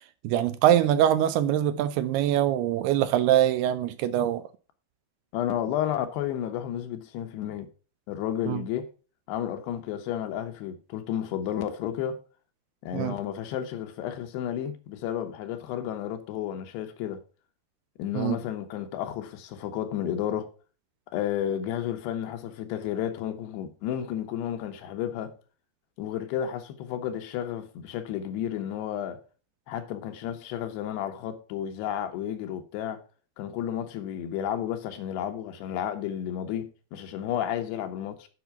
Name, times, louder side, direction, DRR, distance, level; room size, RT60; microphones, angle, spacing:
voice 1, 0.2-4.4 8.5-8.6 12.9-13.2 18.1-18.4, right 11 dB, 80° right, 2.4 m, -23 dB
voice 2, 5.3-7.7 8.1-8.9 9.3-12.2 12.8-17.2 18.0-20.5 21.1-25.3 26.0-29.2 29.7-33.0 33.4-38.3, left 10 dB, 80° left, 3.1 m, -32 dB
8.4 x 5.6 x 5.8 m
omnidirectional pair, 4.8 m